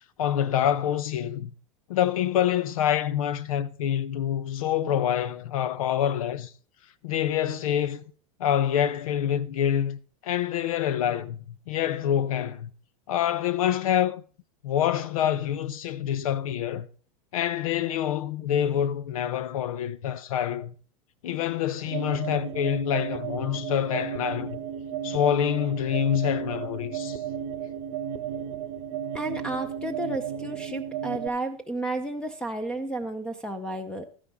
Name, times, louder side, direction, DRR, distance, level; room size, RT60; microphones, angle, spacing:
voice 1, 0.2-1.5 1.9-6.5 7.0-8.0 8.4-12.7 13.1-14.2 14.6-16.9 17.3-20.7 21.2-24.6 25.0-27.2, left 10 dB, 90° left, 0.9 m, -26 dB
sound 1, 21.9-31.3, right 8 dB, 60° right, 0.9 m, -34 dB
voice 2, 29.1-34.0, right 2 dB, 5° left, 0.6 m, -32 dB
12.5 x 10.0 x 3.6 m
supercardioid pair, 160°, 17 cm